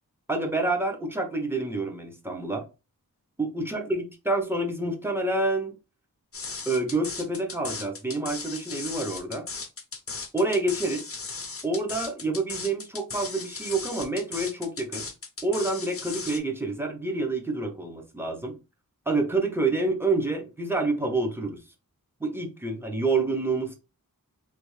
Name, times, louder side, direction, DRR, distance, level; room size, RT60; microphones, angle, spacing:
voice 1, 0.3-2.6 3.4-5.7 6.7-9.5 10.3-11.0 11.6-15.1 15.4-18.5 19.1-21.6 22.2-23.8, right 2 dB, 5° right, 0.9 m, -28 dB
sound 1, 6.3-16.4, left 4 dB, 40° left, 0.6 m, -37 dB
3.3 x 2.4 x 3.2 m
wide cardioid pair, 75°, 34 cm